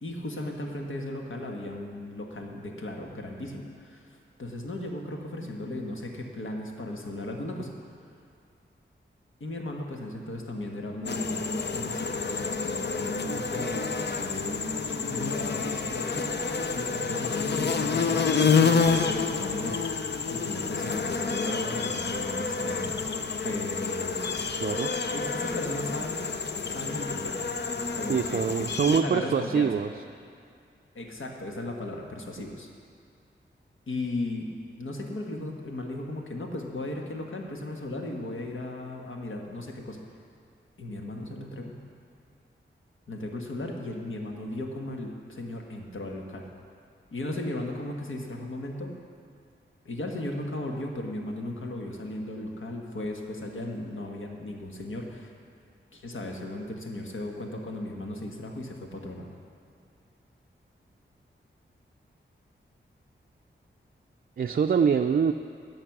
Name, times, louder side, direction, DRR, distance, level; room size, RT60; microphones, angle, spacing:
voice 1, 0.0-7.7 9.4-19.8 20.3-24.5 25.1-26.2 26.7-27.5 27.9-29.7 30.9-32.7 33.9-34.5 34.8-40.0 40.8-41.8 43.1-46.5 47.1-48.9 49.8-55.3 55.9-59.3, left 1 dB, 85° left, 1 dB, 1.5 m, -36 dB
sound 1, 11.0-29.0, left 5 dB, 55° left, 0.7 m, -29 dB
voice 2, 24.6-24.9 28.1-29.9 64.4-65.3, right 6 dB, 50° right, 6 dB, 0.4 m, -24 dB
17.0 x 6.5 x 6.0 m, 2.3 s
wide cardioid pair, 100°, 20 cm